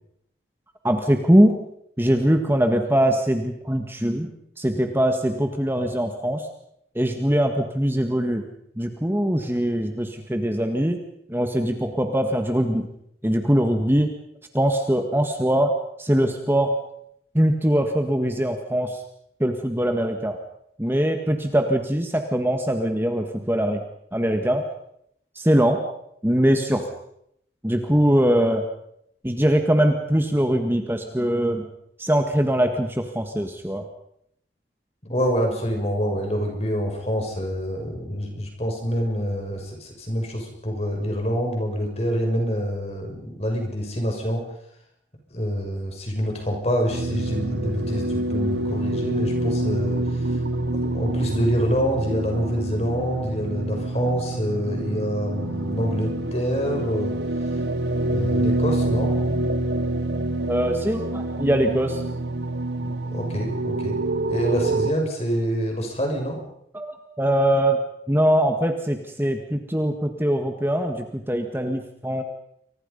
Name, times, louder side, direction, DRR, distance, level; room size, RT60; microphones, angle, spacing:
voice 1, 0.8-1.6 2.0-4.3 4.6-6.5 6.9-8.5 8.8-11.0 11.3-12.9 13.2-14.1 14.5-16.8 17.3-19.0 19.4-20.4 20.8-23.8 24.1-24.7 25.3-25.9 26.2-26.9 27.6-28.7 29.2-31.7 32.0-33.8 60.5-62.0 66.7-67.8 68.1-72.2, equal, 15° right, 5 dB, 1.8 m, -22 dB
voice 2, 35.1-44.5 45.3-50.3 50.8-57.1 58.1-59.2 62.8-63.9 64.3-66.4, equal, 35° left, 2 dB, 6.7 m, -26 dB
sound 1, 46.9-64.9, right 2 dB, 75° right, 1.1 m, -27 dB
29.5 x 24.0 x 5.6 m, 0.73 s
head